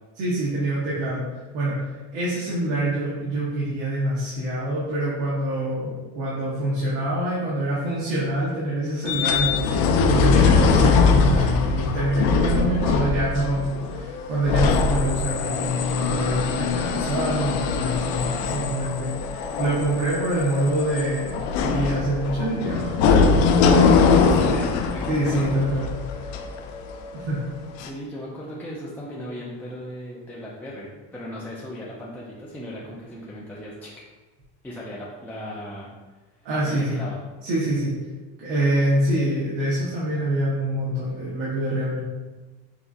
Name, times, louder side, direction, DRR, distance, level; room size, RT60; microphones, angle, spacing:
voice 1, 0.2-1.2 1.5-1.8 2.1-9.7 10.0-23.8 25.1-25.9 27.1-27.4 36.4-37.0 37.4-38.0 38.4-42.0, right 1 dB, 75° right, -7 dB, 1.3 m, -25 dB
sound 1, 9.1-27.2 27.8-27.9, left 5 dB, 70° left, 0.5 m, -22 dB
voice 2, 23.6-25.1 27.8-33.9 34.6-35.9 36.6-37.2, left 1 dB, 5° left, -6 dB, 0.4 m, -37 dB
5.8 x 2.8 x 2.6 m, 1.2 s
cardioid pair, 145°, 35 cm